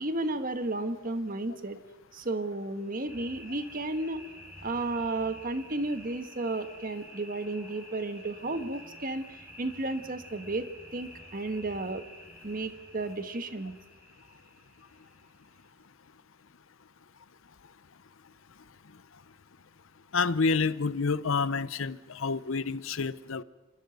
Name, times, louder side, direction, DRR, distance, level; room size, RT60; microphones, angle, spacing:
voice 1, 0.0-1.8 2.1-4.2 4.6-10.6 10.9-12.0 12.4-13.8, right 2 dB, 40° right, 9 dB, 1.5 m, -33 dB
sound 1, 3.1-15.7, equal, 10° right, 4.2 m, -50 dB
voice 2, 20.1-23.4, left 4 dB, 65° left, 16 dB, 0.7 m, -28 dB
27.5 x 13.0 x 9.3 m, 1.2 s
head